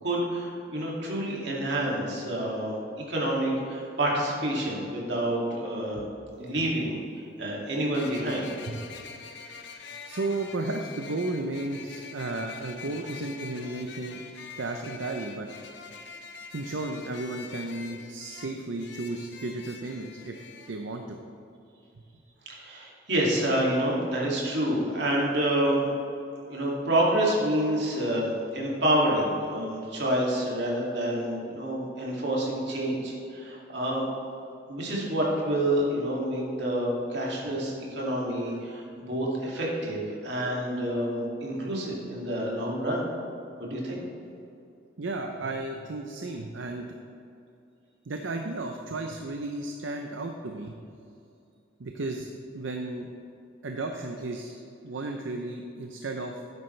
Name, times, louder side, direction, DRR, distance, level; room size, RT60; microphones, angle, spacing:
voice 1, 0.0-2.8 3.1-6.1 6.4-7.0 7.4-8.5 22.5-25.9 26.4-34.1 34.7-43.0 43.6-44.0, right 1 dB, 60° right, -4 dB, 2.4 m, -28 dB
sound 1, 6.3-6.4 7.9-20.7, left 5 dB, 65° left, 0.8 m, -45 dB
voice 2, 10.0-14.2 14.6-15.5 16.5-21.2 45.0-46.9 48.1-50.7 51.8-52.3 52.5-53.1 53.6-56.4, right 2 dB, 75° right, 3 dB, 0.6 m, -34 dB
12.5 x 9.6 x 3.3 m, 2.6 s
head